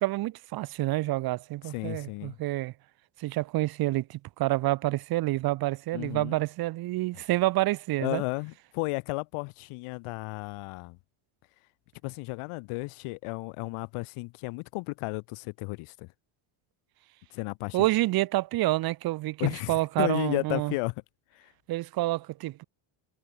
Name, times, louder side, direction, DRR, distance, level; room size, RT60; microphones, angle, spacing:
voice 1, 0.0-2.7 3.2-8.2 17.7-20.7 21.7-22.6, right 17 dB, 45° right, 0.9 m, -28 dB
voice 2, 1.7-2.4 5.9-6.4 8.0-11.0 12.0-16.1 17.3-17.9 19.4-20.9 21.3-21.5, left 25 dB, 80° left, 3.3 m, -33 dB
cardioid pair, 180°, 50 cm